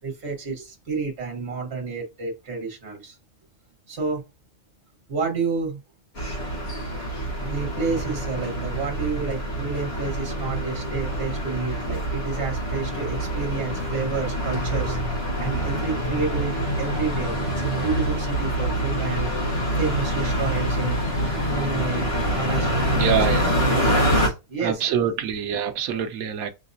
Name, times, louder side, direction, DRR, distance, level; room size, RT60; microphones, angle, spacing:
voice 1, 0.0-3.2 3.9-4.2 5.1-5.8 7.4-15.0 15.4-21.0 21.5-23.2 23.5-25.0, right 4 dB, 50° right, 1.6 m, -30 dB
sound 1, 6.2-24.3, equal, 50° left, 1.6 m, -26 dB
voice 2, 22.9-23.6 24.6-26.5, right 8 dB, 85° right, 1.1 m, -25 dB
5.8 x 2.8 x 2.6 m
omnidirectional pair, 1.5 m